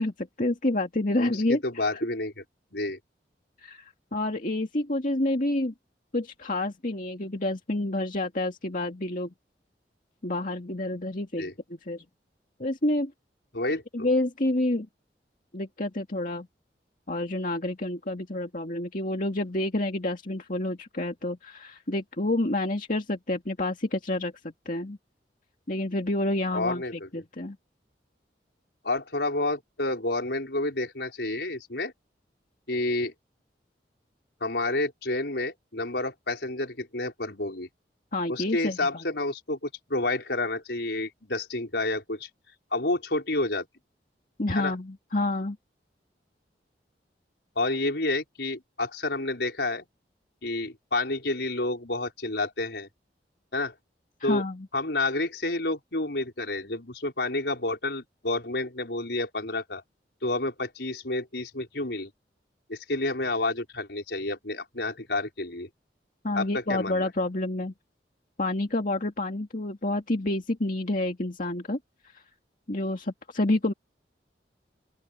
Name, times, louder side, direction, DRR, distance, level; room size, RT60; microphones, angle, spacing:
voice 1, 0.0-1.6 3.6-5.7 6.1-9.3 10.2-12.0 12.6-13.1 13.9-14.9 15.5-16.5 17.1-25.0 25.7-27.6 38.1-39.0 44.4-45.6 54.2-54.7 66.2-67.7 68.4-71.8 72.1-72.2 72.7-73.7, left 1 dB, 50° left, 2.2 m, -28 dB
voice 2, 1.2-2.3 2.7-3.0 11.4-11.5 13.5-14.1 26.5-27.1 28.8-31.9 32.7-33.1 34.4-37.7 38.3-42.3 42.7-43.7 44.5-44.7 47.5-49.9 50.4-52.9 53.5-53.7 54.2-54.4 54.7-59.8 60.2-62.1 62.7-65.7 66.3-67.1, left 2 dB, 75° left, 4.9 m, -29 dB
open air
head